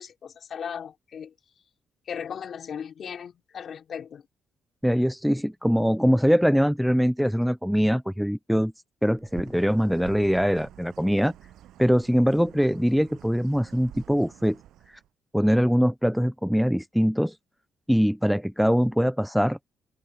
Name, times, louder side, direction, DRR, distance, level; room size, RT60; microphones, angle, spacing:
voice 1, 0.0-1.3 2.1-4.2, left 7 dB, 55° left, 3.2 m, -37 dB
voice 2, 4.8-8.7 9.0-11.3 11.8-14.6 15.3-17.3 17.9-19.6, equal, ahead, 0.4 m, -22 dB
Bird, 9.2-15.1, right 12 dB, 80° right, 7.7 m, -48 dB
open air
cardioid pair, 105°, 0 cm